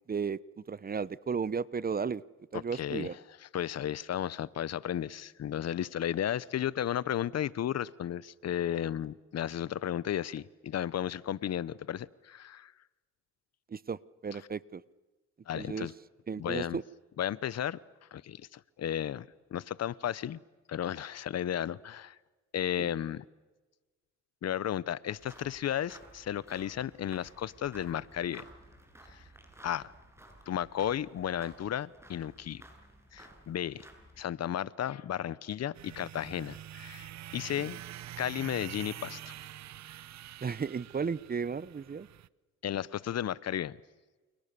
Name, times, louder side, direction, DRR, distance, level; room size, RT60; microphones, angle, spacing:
voice 1, 0.1-2.2 2.5-3.1 13.7-14.8 15.5-15.9 16.3-16.8 22.8-22.9 37.6-37.7 40.4-42.1, right 5 dB, 30° right, 20 dB, 0.9 m, -34 dB
voice 2, 2.7-3.1 3.5-12.7 15.5-15.9 16.4-16.8 17.2-17.8 18.1-19.3 19.5-20.4 20.7-22.2 22.5-23.2 24.4-28.5 29.1-29.2 29.6-29.9 30.5-32.6 33.1-33.8 34.2-37.8 38.2-39.3 42.6-43.8, left 10 dB, 55° left, 20 dB, 1.0 m, -34 dB
sound 1, 25.2-34.2, right 1 dB, 10° right, 7.5 m, -55 dB
sound 2, 35.7-42.3, right 12 dB, 65° right, 0.8 m, -46 dB
30.0 x 28.5 x 6.9 m, 1.2 s
cardioid pair, 90°, 30 cm